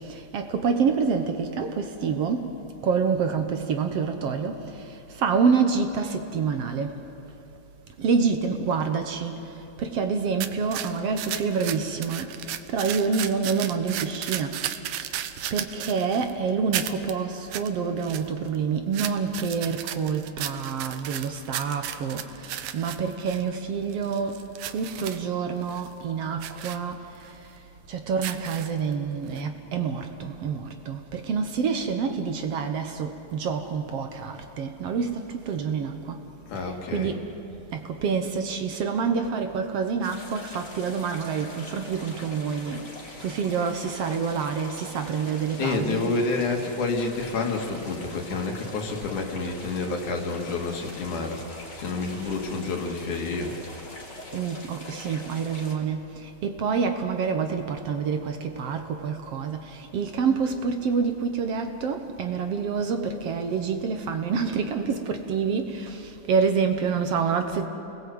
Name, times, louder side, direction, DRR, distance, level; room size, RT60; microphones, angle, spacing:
voice 1, 0.3-2.5 2.8-4.6 5.2-6.9 8.0-9.4 9.8-12.3 12.7-14.5 15.5-22.2 22.7-24.4 24.7-27.0 27.9-35.2 35.5-36.2 36.9-37.2 37.7-42.8 43.2-46.2 54.3-56.1 56.4-59.6 59.9-66.0 66.3-67.7, right 5 dB, 60° right, 6 dB, 1.9 m, -27 dB
sound 1, 10.4-16.3 16.7-17.1 17.5-17.7 18.0-18.6 18.9-23.4 23.9-25.2 25.6-25.9 26.4-26.8 27.3-27.4 28.1-28.9 29.4-29.5, right 11 dB, 85° right, 2.3 m, -34 dB
voice 2, 36.5-37.2 45.6-51.4 51.7-53.5, left 3 dB, 85° left, 2 dB, 3.6 m, -29 dB
sound 2, 40.0-55.7, left 1 dB, 35° left, 3.5 m, -43 dB
29.5 x 20.0 x 7.9 m, 2.9 s
omnidirectional pair, 3.4 m